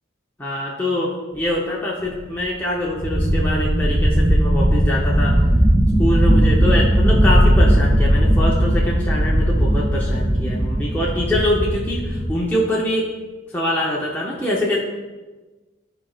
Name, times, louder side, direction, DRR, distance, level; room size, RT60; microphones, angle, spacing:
voice 1, 0.4-5.3 6.0-13.0 13.5-14.8, left 1 dB, 10° left, -6 dB, 0.7 m, -24 dB
sound 1, 2.1-2.2 2.4-2.5 2.9-12.4, equal, 10° right, 0.4 m, -17 dB
12.5 x 4.4 x 2.4 m, 1.2 s
head